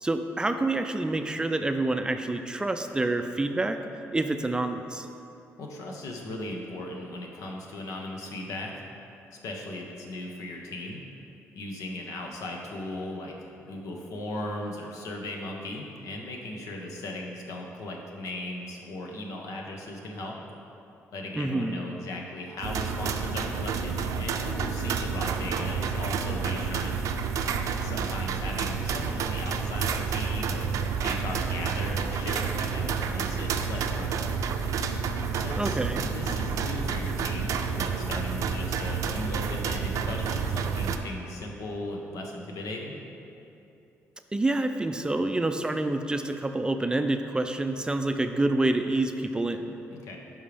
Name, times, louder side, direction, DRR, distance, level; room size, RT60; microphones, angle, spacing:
voice 1, 0.0-3.8 4.1-5.1 21.4-21.8 35.6-36.1 44.3-49.8, right 2 dB, 15° right, 7 dB, 0.4 m, -27 dB
voice 2, 5.6-8.8 9.4-11.0 11.5-20.4 21.1-27.0 27.7-30.7 31.0-34.3 35.3-35.8 36.0-43.0 49.9-50.2, left 2 dB, 80° left, 1 dB, 1.1 m, -37 dB
sound 1, 22.6-41.0, right 6 dB, 75° right, 0.5 m, -29 dB
11.0 x 5.5 x 3.4 m, 2.8 s
cardioid pair, 95°, 6 cm